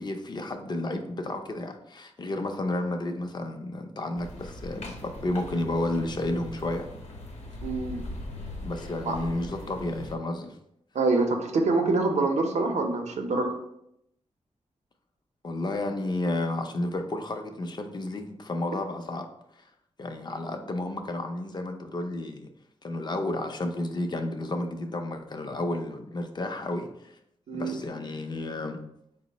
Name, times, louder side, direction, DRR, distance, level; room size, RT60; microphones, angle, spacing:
voice 1, 0.0-6.9 8.6-10.5 15.4-19.3 20.0-22.5 22.8-27.1 27.5-28.8, left 2 dB, 40° left, 5 dB, 0.5 m, -31 dB
sound 1, 4.1-10.1, left 1 dB, 80° left, 0.7 m, -40 dB
voice 2, 7.6-8.1 9.0-9.2 10.9-13.6 27.5-27.8, right 3 dB, 85° right, 4 dB, 0.6 m, -25 dB
4.4 x 2.0 x 4.0 m, 0.78 s
wide cardioid pair, 115°, 11 cm